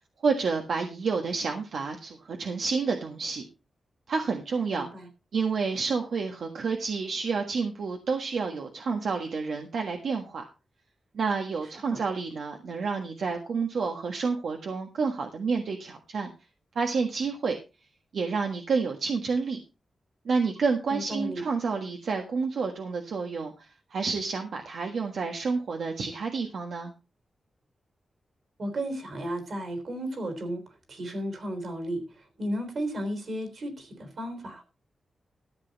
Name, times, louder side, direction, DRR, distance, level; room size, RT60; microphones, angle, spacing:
voice 1, 0.2-3.5 4.1-4.9 5.3-10.5 11.1-16.3 16.7-17.6 18.1-19.6 20.2-26.9, right 4 dB, 70° right, 3 dB, 1.5 m, -29 dB
voice 2, 4.7-5.1 11.9-12.0 20.9-21.4 28.6-30.6 30.9-32.0 32.4-34.6, right 1 dB, 55° right, 7 dB, 3.5 m, -33 dB
14.0 x 8.1 x 4.1 m, 0.30 s
wide cardioid pair, 155°, 0 cm